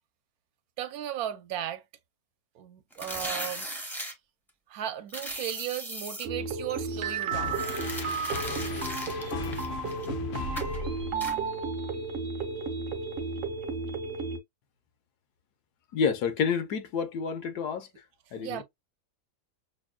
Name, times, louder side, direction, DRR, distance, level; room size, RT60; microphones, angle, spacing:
voice 1, 0.8-1.8 2.6-4.1 4.7-7.6 18.3-18.6, right 11 dB, 75° right, 1.0 m, -36 dB
sound 1, 2.9-4.1 5.1-6.3 7.5-10.1 10.6-10.8 11.2-11.4, right 1 dB, ahead, 0.4 m, -38 dB
sound 2, 6.2-14.4, right 4 dB, 50° right, 0.7 m, -33 dB
sound 3, 7.3-11.6, left 6 dB, 65° left, 0.6 m, -37 dB
voice 2, 15.9-17.9 18.3-18.6, left 6 dB, 85° left, 1.4 m, -29 dB
6.0 x 2.2 x 2.2 m
omnidirectional pair, 1.7 m